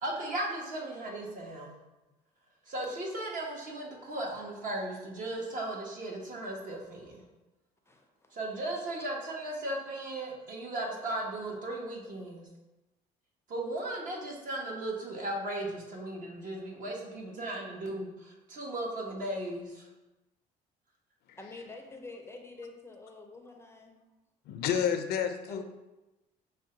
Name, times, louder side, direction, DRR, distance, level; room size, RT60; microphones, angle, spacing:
voice 1, 0.0-1.8 2.7-7.3 8.3-12.5 13.5-19.9, right 1 dB, 50° right, -1 dB, 1.2 m, -36 dB
voice 2, 7.9-8.4 8.7-8.8 21.4-24.0 25.5-25.6, left 3 dB, 15° left, 3 dB, 0.5 m, -47 dB
voice 3, 24.5-25.6, left 8 dB, 70° left, 7 dB, 0.5 m, -30 dB
6.2 x 2.2 x 3.8 m, 1.0 s
cardioid pair, 110°, 17 cm